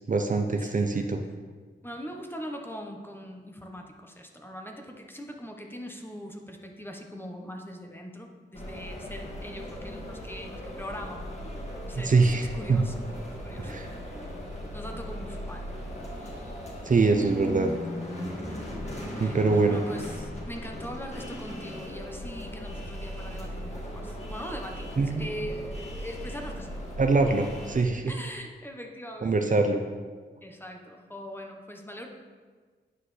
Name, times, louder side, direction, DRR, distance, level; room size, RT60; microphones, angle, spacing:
voice 1, 0.1-1.2 12.0-12.9 13.6-13.9 16.8-17.7 19.2-19.8 25.0-25.3 27.0-28.1 29.2-29.8, right 3 dB, 45° right, 5 dB, 0.6 m, -24 dB
voice 2, 0.6-1.1 1.8-11.3 11.8-12.9 13.4-13.7 14.7-15.7 19.1-26.7 28.1-29.6 30.4-32.1, equal, 10° left, 2 dB, 1.1 m, -41 dB
sound 1, 8.5-27.8, equal, 35° left, 2.1 m, -38 dB
9.4 x 5.7 x 3.3 m, 1.5 s
cardioid pair, 50°, 19 cm